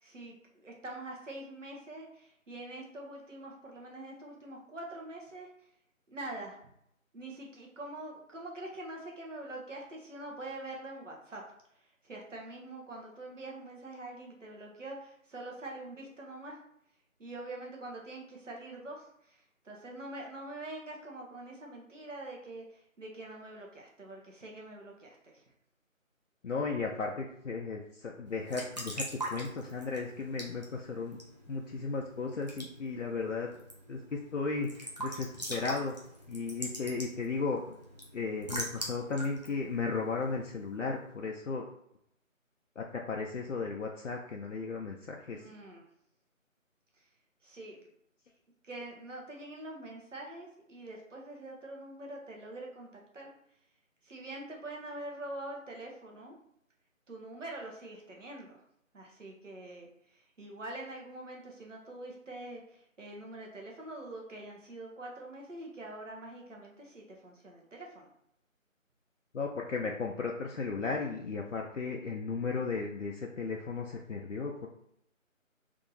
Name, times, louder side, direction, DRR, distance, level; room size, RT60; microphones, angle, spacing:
voice 1, 0.0-5.5 6.1-6.6 7.1-11.4 12.0-16.6 17.2-19.4 19.6-25.4 45.3-45.8 47.4-47.9 48.6-52.9 53.1-53.3 54.0-56.3 57.1-58.6 58.9-59.9 60.1-68.1, right 2 dB, 65° right, 0 dB, 1.3 m, -44 dB
voice 2, 26.4-31.2 31.5-33.5 33.9-36.0 36.3-37.8 38.1-41.7 42.8-45.5 69.3-74.7, left 4 dB, 65° left, 0 dB, 0.6 m, -35 dB
Raindrop / Drip / Trickle dribble, 28.3-40.7, right 1 dB, 30° right, 0.6 m, -43 dB
3.6 x 2.8 x 3.9 m, 0.73 s
figure-of-eight pair, 165°, 41 cm